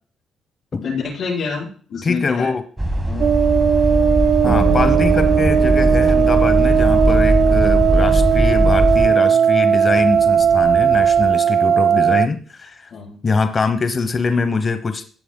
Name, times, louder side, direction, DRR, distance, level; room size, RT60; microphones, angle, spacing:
voice 1, 0.8-2.5 3.0-3.3 12.9-13.2, left 5 dB, 65° left, -4 dB, 5.2 m, -27 dB
voice 2, 2.0-2.6 4.4-12.9 13.2-15.1, left 4 dB, 35° left, 10 dB, 1.0 m, -23 dB
sound 1, 2.8-9.1, equal, 10° right, 1.0 m, -19 dB
sound 2, 3.2-12.3, right 8 dB, 55° right, 0.4 m, -16 dB
sound 3, 4.4-11.4, right 4 dB, 70° right, 4.2 m, -29 dB
17.0 x 7.1 x 2.2 m, 0.43 s
cardioid pair, 90°, 0 cm